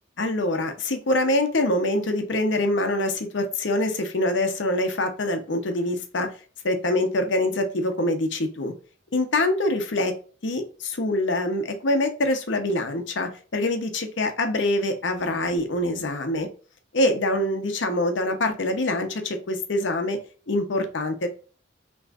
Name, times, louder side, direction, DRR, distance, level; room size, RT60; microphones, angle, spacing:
voice 1, 0.2-6.3 6.6-8.7 9.1-10.1 10.4-16.5 16.9-20.2 20.5-21.3, left 1 dB, 70° left, 6 dB, 0.9 m, -25 dB
6.1 x 3.1 x 2.4 m, 0.38 s
head